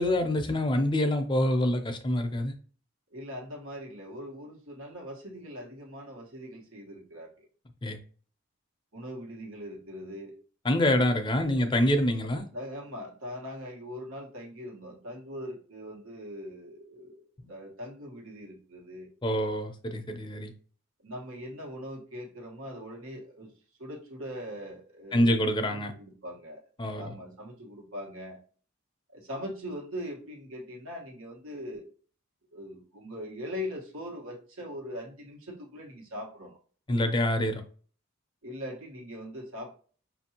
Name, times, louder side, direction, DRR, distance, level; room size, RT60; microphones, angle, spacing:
voice 1, 0.0-2.5 7.8-8.0 10.6-12.5 19.2-20.5 25.1-25.9 26.8-27.1 36.9-37.6, left 1 dB, 20° left, 7 dB, 0.4 m, -26 dB
voice 2, 3.1-7.5 8.9-10.3 11.5-11.7 12.5-17.2 17.5-19.1 21.0-23.5 23.8-26.6 26.9-28.4 29.1-31.9 32.5-36.6 38.4-39.7, equal, 75° right, -1 dB, 1.3 m, -41 dB
5.7 x 2.6 x 2.8 m, 0.42 s
head